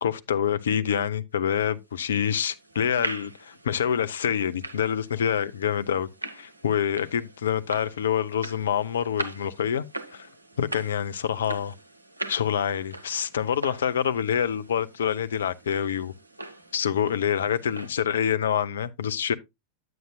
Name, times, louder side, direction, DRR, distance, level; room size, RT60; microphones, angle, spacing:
voice 1, 0.0-6.1 6.3-9.8 10.1-10.3 10.6-11.7 12.3-16.1 16.7-19.3, left 8 dB, 65° left, 0.5 m, -26 dB
sound 1, 1.9-17.9, right 1 dB, 85° right, 0.7 m, -41 dB
9.3 x 8.6 x 2.2 m
figure-of-eight pair, 90°, 0 cm